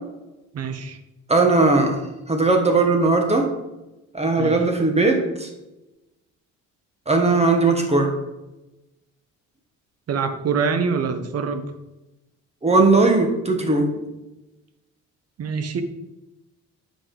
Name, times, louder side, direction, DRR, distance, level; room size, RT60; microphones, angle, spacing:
voice 1, 0.5-1.0 4.4-4.6 10.1-11.7 15.4-15.8, right 5 dB, 55° right, 8 dB, 1.0 m, -25 dB
voice 2, 1.3-2.0 2.3-3.5 4.1-5.5 7.1-8.1 12.6-14.0, right 3 dB, 20° right, 3 dB, 1.4 m, -18 dB
9.6 x 5.2 x 3.8 m, 0.98 s
cardioid pair, 90°, 30 cm